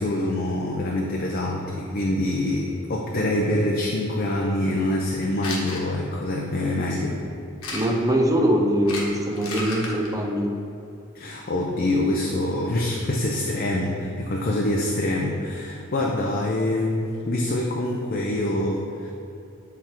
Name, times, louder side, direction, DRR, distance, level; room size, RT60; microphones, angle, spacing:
voice 1, 0.0-7.2 11.1-19.1, left 1 dB, 45° left, -1 dB, 0.5 m, -25 dB
sound 1, 5.4-5.8 7.6-8.1 8.8-10.1, left 2 dB, 90° left, 1.1 m, -32 dB
voice 2, 7.7-10.5, equal, 15° right, 2 dB, 0.6 m, -22 dB
7.9 x 3.5 x 4.4 m, 2.7 s
head